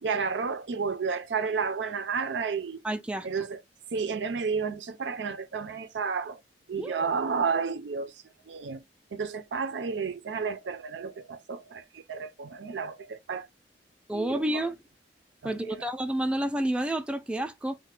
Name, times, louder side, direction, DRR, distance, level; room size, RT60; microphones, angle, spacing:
voice 1, 0.0-2.8 3.2-3.6 3.9-6.4 6.7-8.1 8.5-8.8 9.1-13.5 14.1-14.7 15.4-15.8, right 5 dB, 90° right, 0.5 m, -31 dB
voice 2, 2.8-3.3 6.8-7.1 14.1-14.8 15.4-17.8, right 1 dB, 5° right, 0.3 m, -30 dB
3.3 x 2.2 x 3.1 m
head